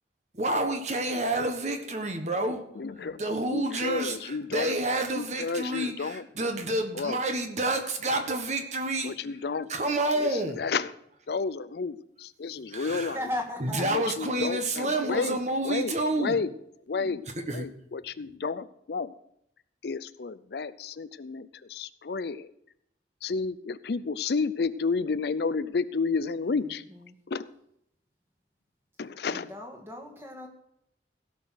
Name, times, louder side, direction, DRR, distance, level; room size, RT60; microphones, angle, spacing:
voice 1, 0.3-2.6 3.2-9.1 9.7-10.6 12.7-13.2 13.6-16.4 17.5-17.7, right 2 dB, 40° right, 6 dB, 1.3 m, -29 dB
voice 2, 2.8-3.2 3.5-4.7 5.1-6.3 6.9-7.2 9.0-9.7 10.2-10.9 11.3-13.2 13.9-15.4 15.6-15.9 16.2-16.5 16.9-17.2 17.5-19.1 19.8-22.5 23.2-26.8 27.3-27.5 29.0-29.5, left 4 dB, 60° left, 15 dB, 0.5 m, -31 dB
voice 3, 13.1-13.9 14.8-15.4 26.9-27.2 29.3-30.5, left 1 dB, 15° right, 2 dB, 1.9 m, -37 dB
16.5 x 6.0 x 6.4 m, 0.75 s
head